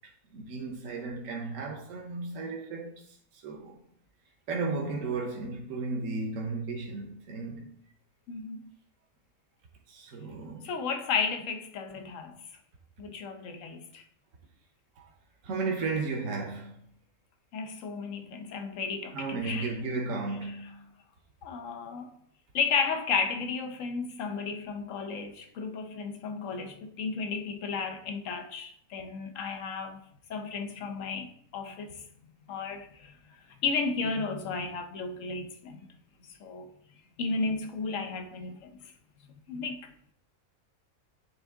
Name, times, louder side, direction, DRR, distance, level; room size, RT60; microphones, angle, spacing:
voice 1, 0.3-2.9 3.4-3.8 4.5-7.7 9.9-10.7 15.4-16.8 19.1-20.9, right 3 dB, 70° right, 1.3 m, -34 dB
voice 2, 8.3-8.7 10.6-12.4 13.0-14.0 17.5-19.7 21.4-22.2 22.5-30.0 30.3-31.3 31.5-32.1 32.5-33.1 33.6-35.9 36.4-36.7 37.2-38.7 39.5-39.9, left 4 dB, 70° left, 1.1 m, -33 dB
8.9 x 3.5 x 3.6 m
omnidirectional pair, 1.4 m